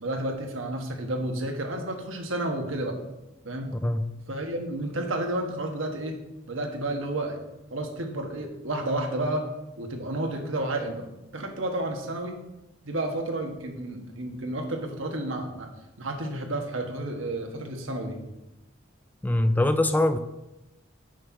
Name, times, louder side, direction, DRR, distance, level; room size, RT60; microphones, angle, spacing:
voice 1, 0.0-3.0 3.4-3.8 4.3-6.2 6.5-7.4 7.7-9.5 9.8-11.0 11.3-12.4 12.8-15.7 16.0-18.2, right 1 dB, 75° right, 3 dB, 1.4 m, -31 dB
voice 2, 19.2-20.2, left 1 dB, 10° left, 10 dB, 0.3 m, -22 dB
6.4 x 6.0 x 6.4 m, 0.96 s
head